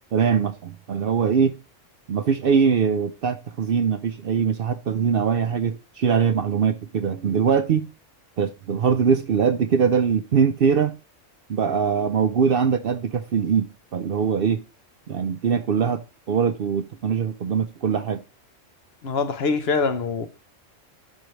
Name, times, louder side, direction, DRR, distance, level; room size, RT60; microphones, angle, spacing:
voice 1, 0.1-1.6 2.1-7.9 8.4-11.0 11.5-14.6 15.1-16.0 16.3-18.2, right 6 dB, 60° right, 0.7 m, -22 dB
voice 2, 19.0-20.3, left 4 dB, 55° left, 1.0 m, -24 dB
11.5 x 4.8 x 3.1 m
omnidirectional pair, 1.3 m